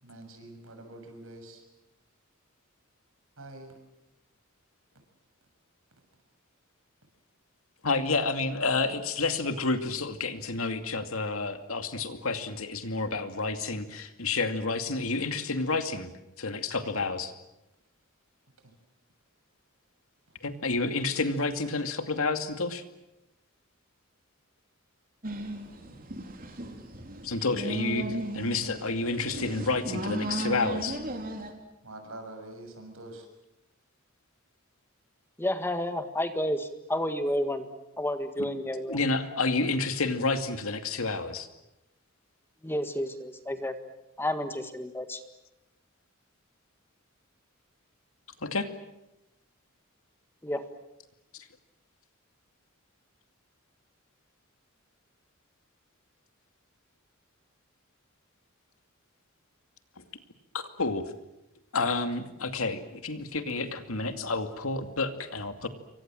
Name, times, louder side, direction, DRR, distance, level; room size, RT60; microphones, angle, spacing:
voice 1, 0.0-1.6 3.4-3.7 18.6-18.7 20.3-20.4 31.8-33.3, right 1 dB, 70° right, 5 dB, 6.8 m, -45 dB
voice 2, 7.8-16.1 16.4-17.3 20.4-22.8 27.2-28.1 28.3-31.0 38.4-38.5 38.9-41.5 48.4-48.7 51.3-51.5 60.5-61.1 61.7-65.7, left 3 dB, 75° left, 8 dB, 2.4 m, -30 dB
sound 1, 25.2-31.5, right 1 dB, 45° right, 3.8 m, -36 dB
voice 3, 35.4-37.7 38.0-39.0 42.6-43.7 44.2-45.2 50.4-50.6, left 1 dB, 10° left, 8 dB, 1.7 m, -30 dB
28.0 x 24.5 x 7.7 m, 0.92 s
head